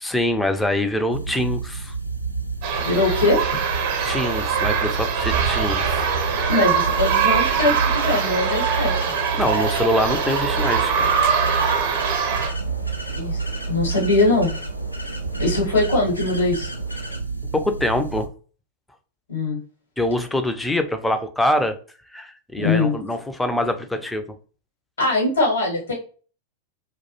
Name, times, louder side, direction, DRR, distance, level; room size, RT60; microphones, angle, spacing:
voice 1, 0.0-1.9 4.0-6.0 9.3-11.3 17.5-18.3 20.0-21.8 22.1-24.2, left 1 dB, 5° left, 7 dB, 0.4 m, -24 dB
sound 1, 1.1-18.3, right 4 dB, 90° right, 0.3 m, -29 dB
sound 2, 2.6-12.5, right 6 dB, 45° right, 0.6 m, -23 dB
voice 2, 2.8-3.4 6.5-8.9 13.1-14.5 15.4-16.7 19.3-19.6 22.6-22.9 25.0-25.9, left 2 dB, 65° left, -2 dB, 0.9 m, -21 dB
sound 3, 6.9-17.2, left 1 dB, 85° left, 0.4 m, -37 dB
2.2 x 2.0 x 2.9 m, 0.39 s
figure-of-eight pair, 90°, 0 cm